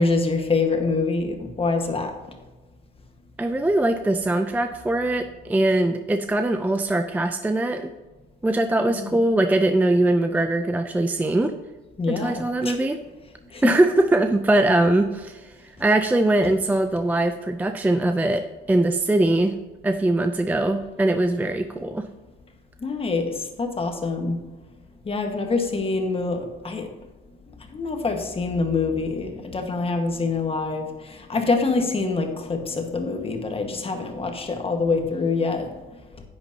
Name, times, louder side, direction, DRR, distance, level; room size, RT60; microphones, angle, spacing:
voice 1, 0.0-2.1 9.0-9.1 12.0-12.8 13.5-13.7 22.8-24.4 25.0-26.9 27.7-35.7, left 3 dB, 25° left, 4 dB, 1.4 m, -25 dB
voice 2, 3.4-7.9 8.4-11.5 12.1-13.0 13.6-19.5 19.8-22.1, right 2 dB, 10° right, 7 dB, 0.4 m, -22 dB
10.5 x 9.1 x 2.8 m, 1.3 s
cardioid pair, 120°, 21 cm